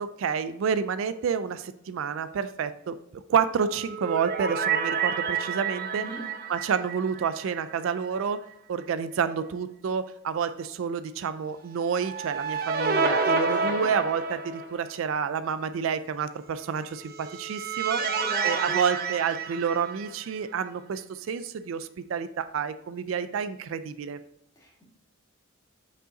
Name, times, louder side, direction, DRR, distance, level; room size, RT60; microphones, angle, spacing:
voice 1, 0.0-3.0 3.3-6.0 6.5-8.4 8.7-18.0 18.4-24.2, right 6 dB, 65° right, 12 dB, 0.3 m, -29 dB
sound 1, 3.6-7.9 8.2-8.3 11.8-14.9 17.0-20.4, right 5 dB, 45° right, 0.7 m, -29 dB
voice 2, 18.0-19.2 24.6-24.8, equal, 15° left, -4 dB, 2.1 m, -38 dB
6.3 x 5.4 x 3.8 m, 0.80 s
head